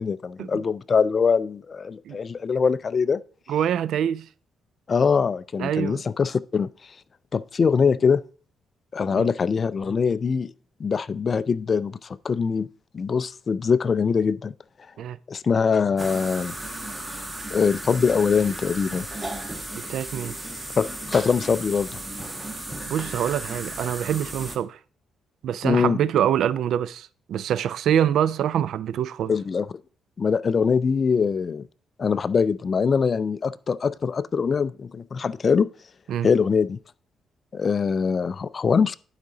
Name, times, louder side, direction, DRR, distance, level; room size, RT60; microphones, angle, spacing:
voice 1, 0.0-3.2 4.9-6.7 7.3-8.2 8.9-10.5 10.8-12.7 12.9-14.5 15.3-16.6 17.5-19.1 20.8-22.0 25.6-26.0 29.3-29.8 30.2-31.7 32.0-35.7 36.2-36.8 37.5-39.0, left 5 dB, 40° left, 0.4 m, -23 dB
voice 2, 3.5-4.3 5.6-6.0 9.1-9.3 15.0-15.2 19.8-20.3 22.9-24.8 25.4-29.3 36.1-36.3, right 10 dB, 75° right, 0.3 m, -25 dB
sound 1, 16.0-24.6, right 1 dB, 15° right, 1.2 m, -35 dB
11.0 x 5.0 x 3.8 m
cardioid pair, 90°, 0 cm